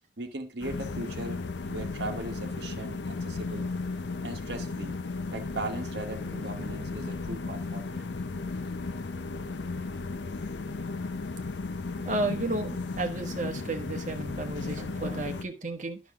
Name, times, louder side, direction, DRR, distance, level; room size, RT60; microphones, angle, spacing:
voice 1, 0.2-1.4 1.7-3.7 4.2-5.0 5.3-8.1, right 2 dB, 65° right, 1.3 m, -38 dB
sound 1, 0.6-15.4, left 3 dB, 80° left, 0.6 m, -35 dB
voice 2, 12.0-16.0, right 2 dB, 45° right, 1.2 m, -33 dB
10.5 x 6.2 x 3.6 m
head